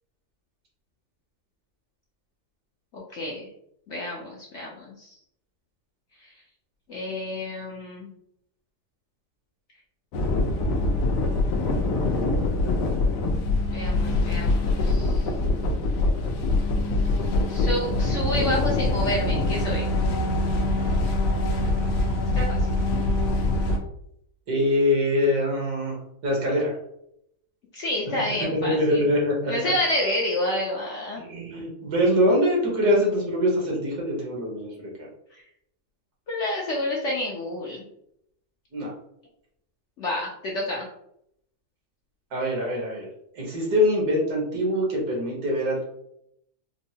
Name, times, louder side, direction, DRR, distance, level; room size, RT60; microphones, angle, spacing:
voice 1, 2.9-3.5 3.9-5.1 6.9-8.1 13.7-15.3 17.5-19.8 22.3-22.4 27.7-29.1 29.5-31.2 36.3-37.8 40.0-40.9, left 1 dB, 60° left, -3 dB, 0.8 m, -29 dB
sound 1, 10.1-23.8, left 2 dB, 85° left, 1.2 m, -24 dB
voice 2, 24.5-26.0 26.2-26.8 28.7-29.5 31.2-35.1 38.7-38.9 42.3-43.1 43.4-45.8, left 1 dB, 70° right, -2 dB, 1.6 m, -23 dB
4.4 x 2.0 x 2.7 m, 0.75 s
omnidirectional pair, 1.7 m